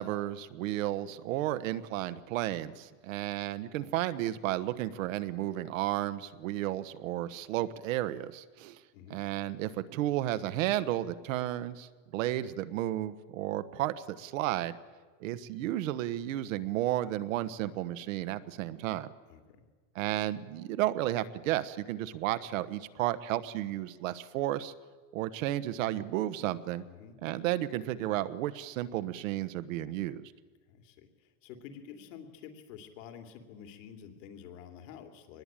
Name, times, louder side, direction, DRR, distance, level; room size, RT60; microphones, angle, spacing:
voice 1, 0.0-8.8 9.1-14.8 15.2-19.1 19.9-24.7 25.1-26.8 27.2-30.3, right 14 dB, 75° right, 13 dB, 1.3 m, -33 dB
voice 2, 8.9-9.2 19.3-19.6 26.9-27.2 30.7-35.4, left 8 dB, 75° left, 5 dB, 3.1 m, -49 dB
24.5 x 20.0 x 9.0 m, 1.4 s
supercardioid pair, 180°, 39 cm